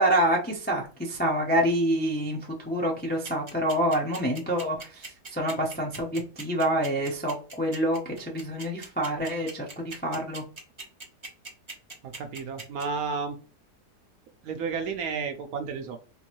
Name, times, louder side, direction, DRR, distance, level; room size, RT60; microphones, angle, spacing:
voice 1, 0.0-10.4, right 1 dB, 15° left, -1 dB, 0.4 m, -27 dB
sound 1, 3.2-12.8, right 3 dB, 25° right, 0.8 m, -40 dB
voice 2, 12.0-13.4 14.4-16.0, right 5 dB, 70° right, 6 dB, 1.0 m, -32 dB
3.8 x 2.6 x 2.9 m, 0.37 s
omnidirectional pair, 1.7 m